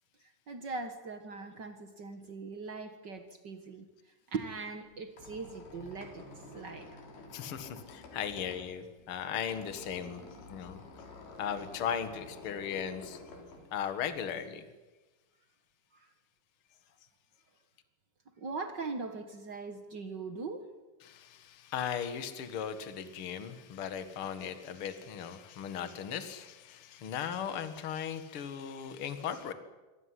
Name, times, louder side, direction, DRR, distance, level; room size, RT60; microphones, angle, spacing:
voice 1, 0.5-3.9 4.3-6.2 6.5-7.0 7.3-7.4 15.9-16.1 18.4-20.7, right 4 dB, 60° right, 8 dB, 1.1 m, -40 dB
Squeak, 4.9-14.5, left 3 dB, 75° left, 5.6 m, -51 dB
voice 2, 7.3-10.2 10.5-10.8 11.4-13.2 13.7-14.6 21.0-29.5, left 8 dB, 45° left, 10 dB, 2.0 m, -37 dB
24.5 x 17.5 x 10.0 m, 1.2 s
omnidirectional pair, 4.4 m